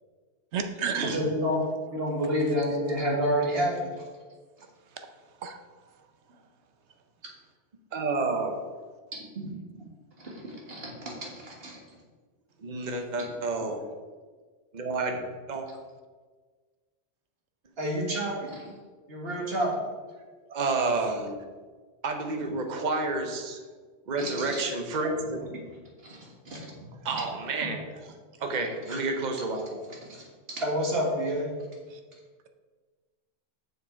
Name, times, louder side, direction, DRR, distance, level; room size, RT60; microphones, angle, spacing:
voice 1, 0.5-1.4 4.9-5.1 5.4-5.6 31.9-32.0, right 6 dB, 85° right, 6 dB, 1.1 m, -32 dB
voice 2, 1.0-1.6 1.9-3.9 9.1-9.5 10.2-11.8 13.2-13.3 17.8-18.7 19.1-19.7 24.2-24.6 26.0-27.2 28.9-29.0 30.1-31.5, equal, 60° right, -1 dB, 1.9 m, -30 dB
voice 3, 7.9-8.6 12.6-13.8 14.7-15.2 15.5-15.7 20.5-21.4 22.0-23.6 24.1-25.4 27.0-27.9 28.4-29.8, right 3 dB, 45° right, 4 dB, 1.0 m, -29 dB
7.2 x 6.6 x 4.4 m, 1.4 s
omnidirectional pair, 1.1 m